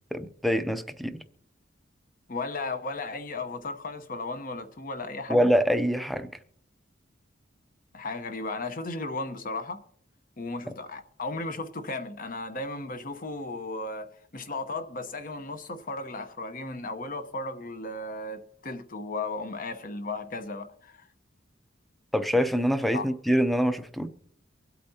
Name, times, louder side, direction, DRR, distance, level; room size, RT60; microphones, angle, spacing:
voice 1, 0.1-1.2 5.3-6.3 22.1-24.1, equal, ahead, 0.6 m, -25 dB
voice 2, 2.3-5.5 7.9-9.8 10.4-21.1 22.9-23.1, left 2 dB, 45° left, 1.0 m, -35 dB
24.0 x 8.2 x 2.8 m
head